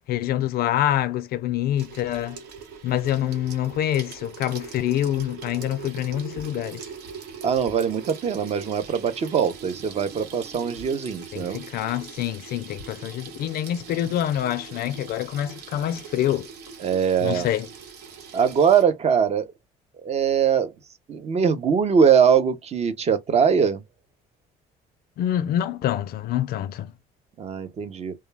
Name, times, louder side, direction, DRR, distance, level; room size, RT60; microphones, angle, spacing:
voice 1, 0.1-2.4 2.8-6.8 11.3-16.5 17.2-17.7 25.2-26.9, left 12 dB, 65° left, 0.4 m, -26 dB
Water tap faucet / Sink (filling or washing), 1.8-18.8, right 5 dB, 85° right, 1.2 m, -41 dB
voice 2, 7.4-11.6 16.8-17.5 18.3-19.5 20.0-20.7 21.1-23.8 27.4-28.1, right 7 dB, 40° right, 0.6 m, -22 dB
2.2 x 2.2 x 3.2 m
cardioid pair, 110°, 17 cm